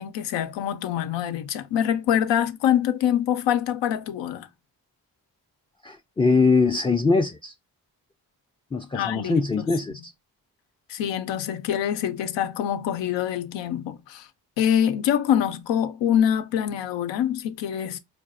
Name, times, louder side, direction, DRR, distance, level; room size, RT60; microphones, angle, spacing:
voice 1, 0.0-4.5 8.9-9.8 10.9-14.3 14.6-18.0, left 10 dB, 85° left, 0.5 m, -25 dB
voice 2, 5.8-7.5 8.7-10.1, left 4 dB, 15° left, 0.3 m, -22 dB
4.0 x 2.5 x 2.4 m
supercardioid pair, 40°, 43 cm